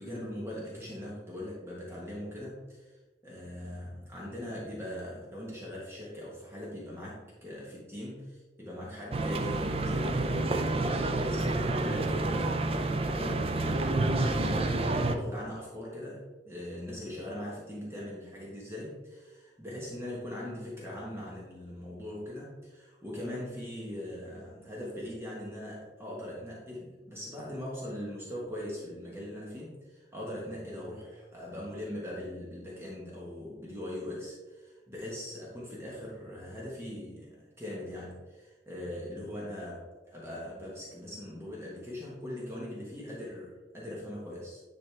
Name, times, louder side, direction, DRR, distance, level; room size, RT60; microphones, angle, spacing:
voice 1, 0.0-3.0 3.2-44.6, left 1 dB, 15° right, -5 dB, 1.3 m, -41 dB
sound 1, 9.1-15.2, right 2 dB, 35° right, 0.5 m, -29 dB
10.0 x 4.2 x 3.4 m, 1.3 s
head